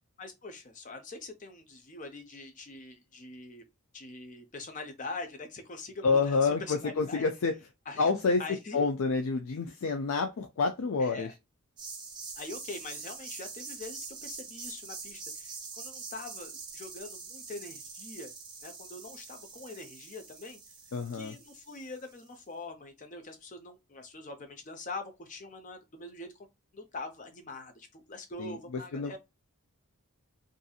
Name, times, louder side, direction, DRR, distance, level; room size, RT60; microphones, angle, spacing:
voice 1, 0.2-3.6 3.9-7.3 7.9-8.1 8.4-8.9 11.0-11.3 12.4-18.3 18.6-20.6 21.1-26.3 26.7-29.2, left 3 dB, 35° left, 0.6 m, -43 dB
voice 2, 6.0-7.5 8.0-8.4 8.7-11.3 20.9-21.3 28.4-28.6 28.9-29.2, left 4 dB, 75° left, 0.4 m, -28 dB
sound 1, 11.8-22.3, right 4 dB, 20° right, 0.7 m, -44 dB
2.7 x 2.6 x 2.3 m
head